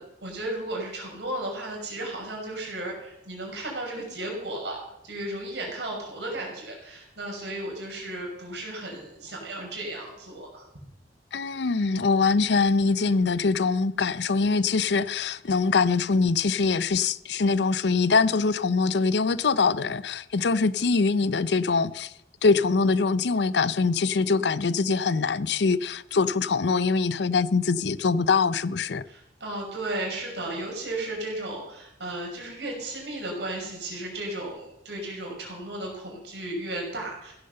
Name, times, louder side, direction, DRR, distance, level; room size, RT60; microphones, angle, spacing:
voice 1, 0.0-4.8 5.0-10.7 20.7-21.1 29.1-37.3, right 1 dB, 75° right, 5.8 m, -34 dB
voice 2, 11.3-22.1 22.4-29.0, left 4 dB, 70° left, 0.6 m, -23 dB
16.0 x 10.0 x 6.7 m
head